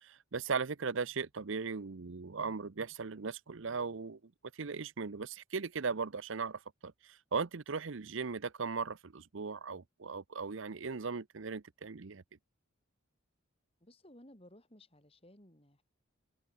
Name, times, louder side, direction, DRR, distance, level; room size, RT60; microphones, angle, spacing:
voice 1, 0.0-4.2 4.5-12.2, right 5 dB, 65° right, 0.7 m, -38 dB
voice 2, 13.8-15.8, left 1 dB, 25° left, 4.2 m, -58 dB
open air
head